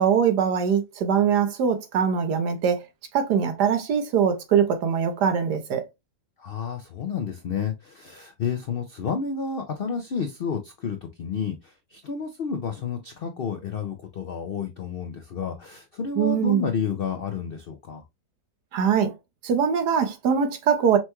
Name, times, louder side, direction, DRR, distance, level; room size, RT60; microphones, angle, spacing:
voice 1, 0.0-2.8 3.1-5.8 16.2-16.7 18.7-19.1 19.4-21.0, right 7 dB, 80° right, 1.4 m, -22 dB
voice 2, 6.4-18.0, left 6 dB, 90° left, 0.5 m, -30 dB
5.7 x 2.2 x 2.9 m
omnidirectional pair, 1.8 m